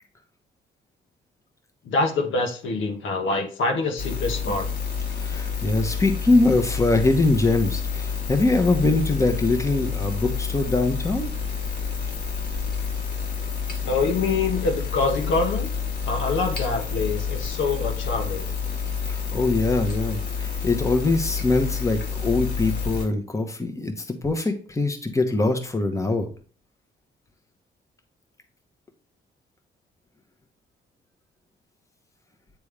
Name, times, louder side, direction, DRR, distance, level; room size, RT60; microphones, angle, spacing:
voice 1, 1.8-4.7 13.8-15.7 16.1-18.5, left 3 dB, 75° left, 4 dB, 1.2 m, -25 dB
sound 1, 4.0-23.1, left 6 dB, 55° left, 1.6 m, -29 dB
voice 2, 5.1-11.3 19.1-26.3, left 2 dB, 15° left, 6 dB, 1.0 m, -23 dB
8.5 x 3.5 x 3.3 m, 0.41 s
cardioid pair, 90°, 20 cm